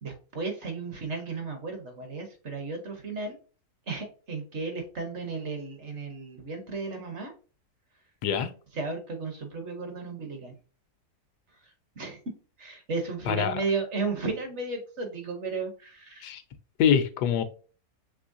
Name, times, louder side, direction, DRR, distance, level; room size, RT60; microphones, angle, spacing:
voice 1, 0.0-3.4 3.9-7.3 8.7-10.5 11.6-12.2 12.6-16.3, right 4 dB, 55° right, 1.0 m, -34 dB
voice 2, 13.3-13.6 16.2-16.4 16.8-17.4, left 8 dB, 90° left, 1.2 m, -24 dB
6.2 x 3.1 x 2.5 m
omnidirectional pair, 1.7 m